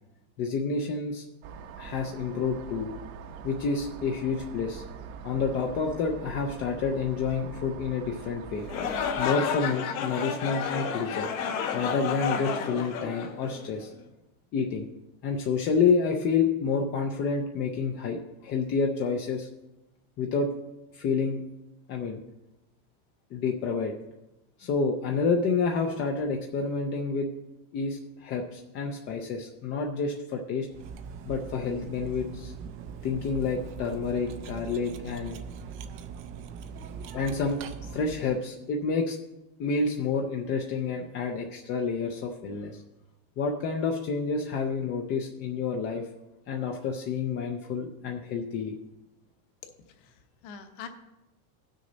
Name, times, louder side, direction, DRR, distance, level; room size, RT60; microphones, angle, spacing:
voice 1, 0.4-1.2 1.8-2.9 3.4-4.8 5.2-8.7 9.2-11.3 11.7-13.9 14.5-14.9 15.2-19.5 20.2-20.5 20.9-21.4 21.9-22.2 23.3-23.9 24.6-27.3 27.7-30.7 31.2-32.5 33.0-35.4 37.1-39.2 39.6-42.8 43.4-46.1 46.5-48.8, left 5 dB, 25° left, 2 dB, 0.5 m, -29 dB
sound 1, 1.4-9.2, right 7 dB, 70° right, 1.1 m, -43 dB
sound 2, 8.6-13.9, left 7 dB, 70° left, 1.3 m, -31 dB
Cutlery silverware, 30.7-38.4, right 6 dB, 30° right, 0.5 m, -41 dB
voice 2, 49.9-50.9, left 7 dB, 50° left, 5 dB, 1.2 m, -44 dB
16.5 x 6.3 x 4.0 m, 0.97 s
supercardioid pair, 165°, 43 cm